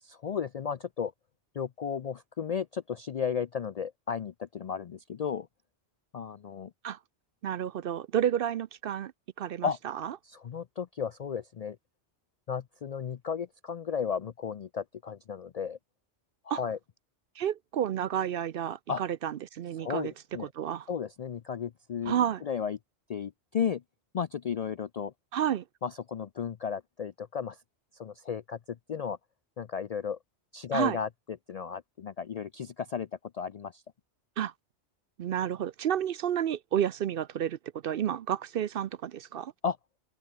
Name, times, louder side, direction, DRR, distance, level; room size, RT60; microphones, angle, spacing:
voice 1, 0.0-1.1 1.5-5.5 6.1-6.7 9.6-9.8 10.2-11.8 12.5-15.8 16.4-16.8 18.9-19.0 19.8-20.5 20.9-22.8 23.1-23.8 24.1-25.1 25.8-27.6 27.9-29.2 29.6-30.2 30.5-33.1 33.3-33.8 39.6-39.8, left 7 dB, 60° left, 0.4 m, -34 dB
voice 2, 7.4-9.1 9.4-9.7 16.5-16.6 17.4-20.1 20.6-20.8 22.1-22.4 25.3-25.6 30.7-31.0 34.4-34.5 35.2-37.6 37.8-39.5, right 10 dB, 60° right, 0.7 m, -30 dB
open air
omnidirectional pair, 1.2 m